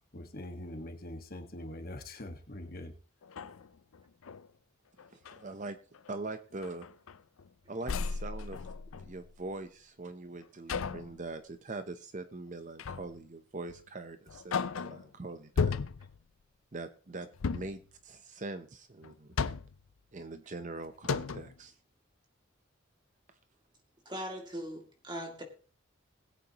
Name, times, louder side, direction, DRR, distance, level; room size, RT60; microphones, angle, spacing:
voice 1, 0.1-2.9, left 1 dB, 45° left, 1.6 m, -43 dB
sound 1, 2.6-2.8 3.2-4.5 5.0-5.4 5.9-6.2 6.6-7.5 7.8-9.4 10.7-11.2 12.8-13.2 13.7-13.8 14.3-15.1 15.6-16.2 17.3-17.8 19.0-19.9 20.6-20.7 21.0-21.6, left 5 dB, 85° left, 0.5 m, -35 dB
voice 2, 5.1-5.8 6.1-6.9 7.7-8.6 9.1-15.8 16.7-19.3 20.1-21.7, right 2 dB, 35° right, 0.7 m, -42 dB
voice 3, 24.1-25.4, equal, 20° right, 2.3 m, -40 dB
20.5 x 8.4 x 3.0 m
head